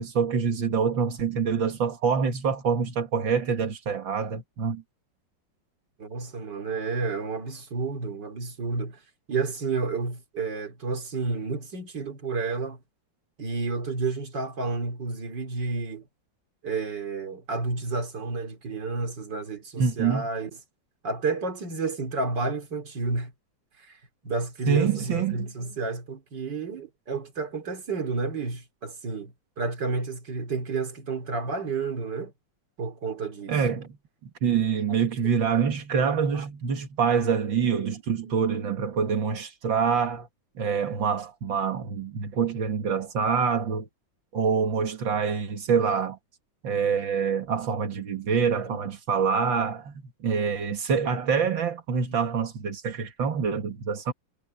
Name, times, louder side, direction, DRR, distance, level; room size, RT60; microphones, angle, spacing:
voice 1, 0.0-4.8 19.8-20.3 24.7-25.5 33.5-33.9 34.4-40.3 40.6-43.9 44.3-46.2 46.6-49.9 50.2-54.1, right 6 dB, 85° right, 2.6 m, -26 dB
voice 2, 6.0-9.0 9.3-12.8 13.4-16.1 16.6-20.5 21.0-23.3 23.8-24.0 24.2-32.3 32.8-33.6 36.3-36.5 38.2-38.3 48.7-48.8, right 4 dB, 65° right, 3.5 m, -31 dB
omnidirectional pair, 2.0 m